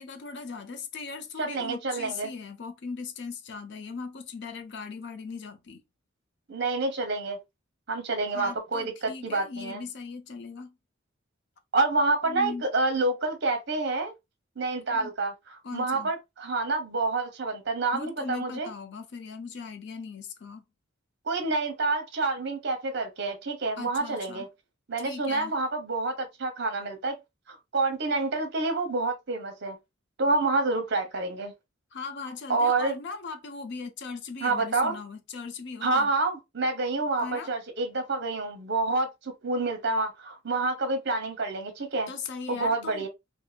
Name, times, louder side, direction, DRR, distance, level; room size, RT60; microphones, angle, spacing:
voice 1, 0.0-5.8 8.3-10.8 12.2-12.6 14.9-15.1 15.6-16.1 17.9-20.6 23.8-24.5 25.0-25.5 31.9-36.1 37.2-37.5 42.1-43.1, left 4 dB, 60° left, 0.5 m, -39 dB
voice 2, 1.4-2.3 6.5-7.4 7.9-9.9 11.7-14.1 14.6-18.7 21.3-24.5 24.9-27.2 27.5-29.8 30.2-31.5 32.5-32.9 34.4-35.0 35.8-42.1 42.5-43.1, right 3 dB, 55° right, 0.9 m, -28 dB
2.7 x 2.7 x 2.4 m
head